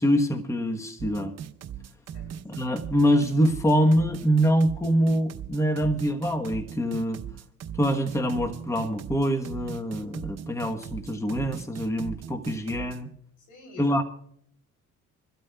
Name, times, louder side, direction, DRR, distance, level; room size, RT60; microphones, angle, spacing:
voice 1, 0.0-1.3 2.4-7.2 7.8-13.1 13.8-14.0, equal, 10° left, 6 dB, 1.0 m, -24 dB
sound 1, 1.0-13.0, right 8 dB, 60° right, 0.8 m, -39 dB
voice 2, 13.4-14.0, left 3 dB, 85° left, 3 dB, 3.4 m, -48 dB
26.0 x 12.5 x 2.3 m, 0.66 s
cardioid pair, 90°, 30 cm